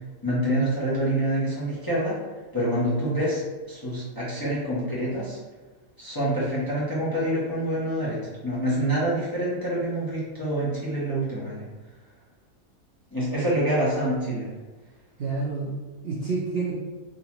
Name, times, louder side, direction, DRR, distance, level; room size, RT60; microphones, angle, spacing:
voice 1, 0.2-2.2 2.5-5.4 6.0-8.2 8.4-11.7 13.1-14.5, right 1 dB, 20° left, -9 dB, 0.8 m, -26 dB
voice 2, 15.2-16.8, right 4 dB, 60° right, -5 dB, 0.6 m, -29 dB
3.7 x 2.5 x 2.9 m, 1.3 s
omnidirectional pair, 1.5 m